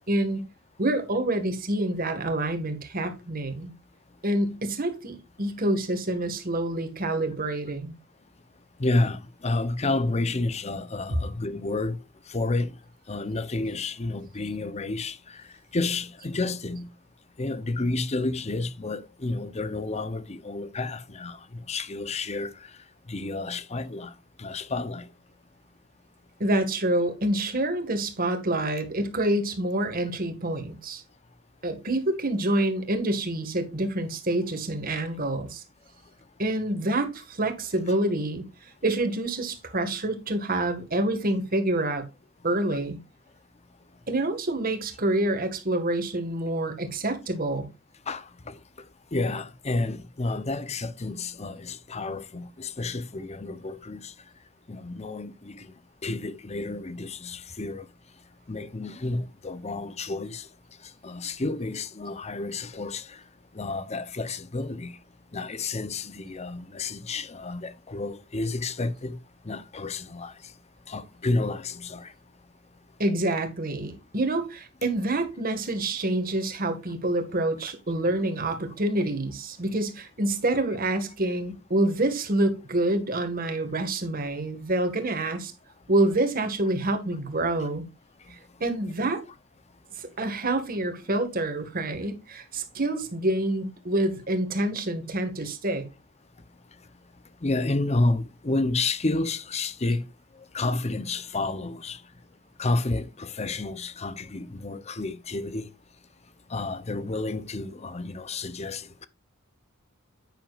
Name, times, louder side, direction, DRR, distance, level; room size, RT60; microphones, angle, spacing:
voice 1, 0.1-0.4 0.8-3.7 4.2-7.9 26.4-31.0 31.6-35.6 36.4-42.1 42.4-43.0 44.1-47.7 73.0-85.5 85.9-87.9 88.3-89.2 90.0-95.8, right 1 dB, 45° right, 1.8 m, -27 dB
voice 2, 8.8-12.0 12.3-12.7 13.1-15.4 15.7-16.9 17.4-21.4 21.7-22.7 23.1-24.1 24.4-25.1 37.9-38.0 48.1-48.6 49.1-54.1 54.7-55.7 56.0-57.9 58.5-60.5 61.0-63.2 63.5-65.0 65.3-69.2 69.4-70.3 70.9-72.1 87.6-87.7 97.4-100.0 100.5-102.0 102.6-105.7 106.5-109.1, left 2 dB, 30° left, 0.8 m, -30 dB
9.9 x 9.0 x 2.5 m
head